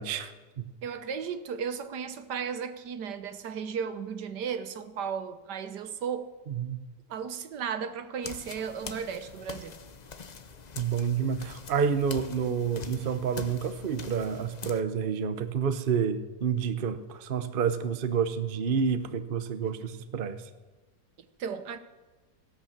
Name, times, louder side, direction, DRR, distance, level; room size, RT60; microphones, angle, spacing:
voice 1, 0.0-0.7 6.5-6.8 10.7-20.5, right 7 dB, 40° right, 0.8 m, -29 dB
voice 2, 0.8-6.3 7.1-9.8 21.4-21.8, right 7 dB, 75° right, 1.5 m, -35 dB
sound 1, 8.2-14.8, left 5 dB, 45° left, 0.5 m, -44 dB
16.5 x 11.5 x 7.4 m
omnidirectional pair, 1.8 m